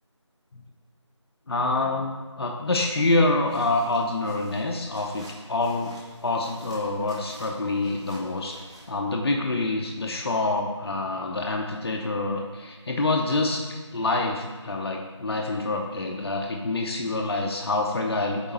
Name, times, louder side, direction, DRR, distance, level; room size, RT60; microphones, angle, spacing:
voice 1, 1.5-5.9 6.2-8.6 8.9-13.6 13.9-18.5, left 2 dB, 55° left, 1 dB, 0.6 m, -26 dB
sound 1, 3.4-8.9, right 1 dB, 15° right, 1.0 m, -49 dB
8.1 x 3.4 x 4.1 m, 1.3 s
figure-of-eight pair, 170°, 16 cm